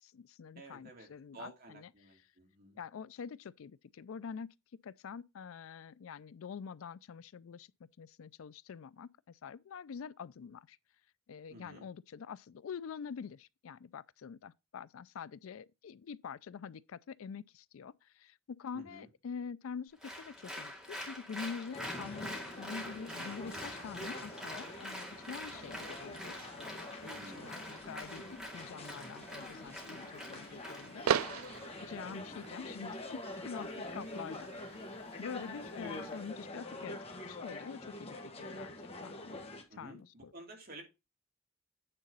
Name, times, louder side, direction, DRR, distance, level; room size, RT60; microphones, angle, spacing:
voice 1, 0.0-2.3 2.8-4.5 4.8-7.7 8.0-10.8 11.3-31.0 31.8-37.0 37.3-38.7 39.0-39.5 39.8-40.3, left 6 dB, 75° left, 0.4 m, -46 dB
voice 2, 0.6-1.1 1.3-2.8 11.5-11.9 18.7-19.1 27.0-27.5 32.1-32.4 35.8-36.0 39.7-40.8, right 1 dB, 50° right, 2.6 m, -52 dB
Applause, 20.0-31.6, equal, 5° right, 2.3 m, -46 dB
sound 1, 21.7-39.6, left 2 dB, 30° left, 1.4 m, -46 dB
sound 2, 22.5-36.3, right 8 dB, 90° right, 0.4 m, -43 dB
9.0 x 4.0 x 5.3 m
head